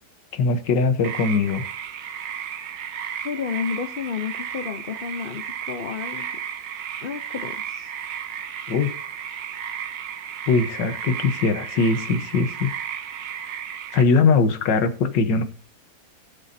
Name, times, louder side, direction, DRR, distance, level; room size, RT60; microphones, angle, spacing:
voice 1, 0.3-1.6 8.7-8.9 10.5-12.7 13.9-15.4, left 4 dB, 80° left, 10 dB, 1.8 m, -21 dB
sound 1, 1.0-14.0, right 8 dB, 85° right, 1.6 m, -34 dB
voice 2, 3.2-6.4 7.0-7.9, left 6 dB, 65° left, 9 dB, 0.5 m, -31 dB
17.0 x 7.2 x 2.7 m, 0.39 s
omnidirectional pair, 1.9 m